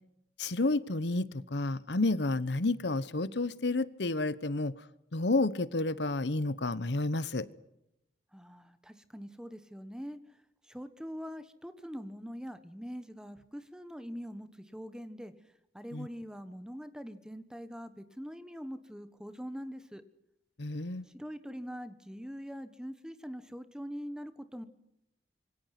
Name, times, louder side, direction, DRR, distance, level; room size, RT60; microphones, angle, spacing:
voice 1, 0.4-4.7 5.1-7.5 15.9-16.1 20.6-21.0, left 2 dB, 75° left, 17 dB, 1.1 m, -30 dB
voice 2, 8.3-10.2 10.7-15.3 15.7-20.0 21.1-24.7, equal, 5° right, 11 dB, 1.4 m, -43 dB
27.0 x 24.0 x 6.0 m, 0.85 s
head